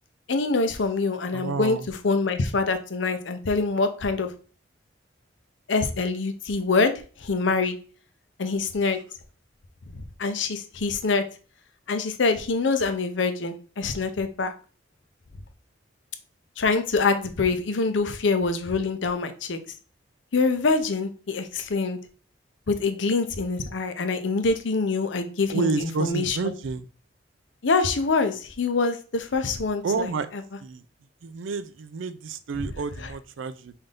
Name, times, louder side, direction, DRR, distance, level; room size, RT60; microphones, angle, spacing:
voice 1, 0.3-1.8 2.0-4.3 5.7-6.9 7.2-7.8 8.4-9.0 9.9-11.2 11.9-14.5 16.6-19.6 20.3-22.0 22.7-26.4 27.6-30.1, left 4 dB, 75° left, 8 dB, 0.7 m, -25 dB
voice 2, 1.3-1.9 25.5-26.9 29.8-30.3 30.6-30.8 31.2-33.7, right 4 dB, 90° right, 12 dB, 0.4 m, -29 dB
5.5 x 2.6 x 3.4 m, 0.38 s
head